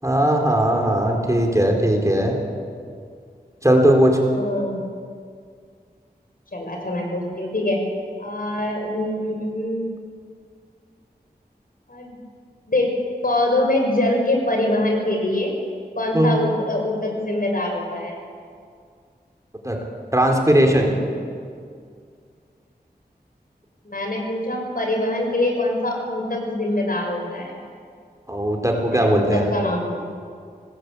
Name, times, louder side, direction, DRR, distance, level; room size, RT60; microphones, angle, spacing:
voice 1, 0.0-2.4 3.6-4.2 16.1-16.3 19.6-19.8 20.1-20.9 28.3-29.5, right 1 dB, 20° right, 1 dB, 4.2 m, -18 dB
voice 2, 4.4-4.8 6.5-7.8 8.2-9.8 11.9-12.2 12.7-13.0 13.2-15.5 16.0-18.1 23.8-27.6 28.9-30.0, left 1 dB, 60° left, 1 dB, 6.3 m, -24 dB
26.0 x 20.0 x 8.5 m, 2.2 s
wide cardioid pair, 60°, 17 cm